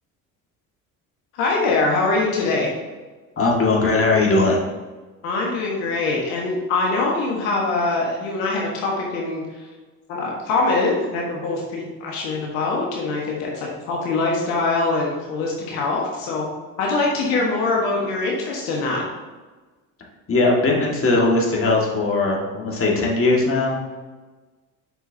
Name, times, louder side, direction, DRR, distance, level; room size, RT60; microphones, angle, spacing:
voice 1, 1.3-2.7 5.2-9.7 10.1-16.4 16.8-19.0, left 3 dB, 75° left, -2 dB, 1.4 m, -23 dB
voice 2, 3.4-4.6 20.3-23.8, left 2 dB, 30° left, -2 dB, 1.9 m, -19 dB
6.8 x 6.0 x 2.8 m, 1.3 s
hypercardioid pair, 60°, 42 cm